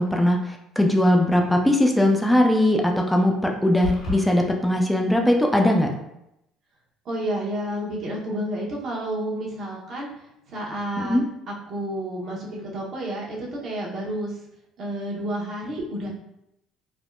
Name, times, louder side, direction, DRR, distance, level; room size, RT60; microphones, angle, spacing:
voice 1, 0.0-5.9 11.0-11.3, left 1 dB, 5° left, 1 dB, 0.5 m, -20 dB
sound 1, 3.8-4.2, left 3 dB, 50° left, 1.4 m, -29 dB
voice 2, 7.0-10.1 10.5-11.2 11.5-14.4 14.8-16.1, right 1 dB, 55° right, -4 dB, 1.0 m, -30 dB
3.4 x 2.1 x 2.5 m, 0.84 s
supercardioid pair, 70°, 0 cm